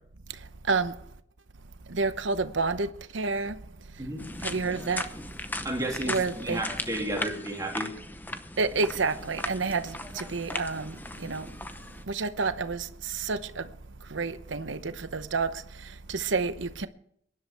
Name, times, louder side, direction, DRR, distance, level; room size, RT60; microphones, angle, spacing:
voice 1, 0.6-1.0 1.9-3.6 4.4-5.1 6.1-6.6 8.6-11.5 12.1-13.7 14.1-16.9, right 4 dB, 75° right, 0.9 m, -29 dB
sound 1, 4.2-12.0, left 2 dB, 10° left, 0.8 m, -38 dB
voice 2, 5.6-7.9, right 1 dB, 20° right, 2.7 m, -32 dB
23.0 x 11.0 x 3.4 m
head